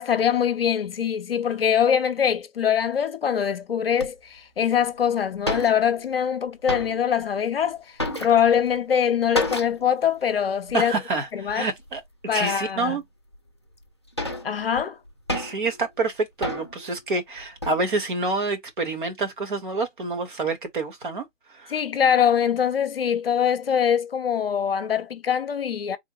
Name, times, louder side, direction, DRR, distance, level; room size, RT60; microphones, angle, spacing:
voice 1, 0.0-10.9 11.3-11.7 12.3-13.0 14.4-15.0 21.7-26.0, left 8 dB, 50° left, 0.8 m, -23 dB
sound 1, 4.0-4.1 4.8-4.9 5.1-5.2 5.3-6.2 6.5-7.2 7.6-8.7 9.3-9.9 10.2-10.3 10.7-10.9 11.5-12.0 12.5-12.6 13.3-13.4 13.8-15.8 16.4-16.9 17.3-17.8, left 1 dB, 25° left, 0.4 m, -31 dB
voice 2, 10.7-12.0 12.3-13.0 15.3-21.2 21.5-21.7, right 3 dB, 40° right, 1.2 m, -27 dB
3.7 x 3.3 x 2.4 m
hypercardioid pair, 160°, 37 cm